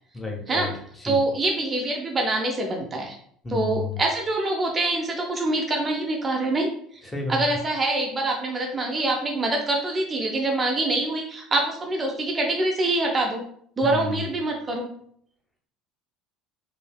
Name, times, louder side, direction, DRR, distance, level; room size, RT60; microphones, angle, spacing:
voice 1, 0.1-0.7 1.0-1.2 3.4-4.0 7.1-7.4 13.8-14.2, left 3 dB, 15° left, 0 dB, 0.8 m, -31 dB
voice 2, 1.0-3.2 3.5-6.7 7.3-13.4 13.8-14.9, right 2 dB, 25° right, 1 dB, 0.5 m, -25 dB
3.2 x 2.6 x 2.2 m, 0.63 s
figure-of-eight pair, 60°, 0 cm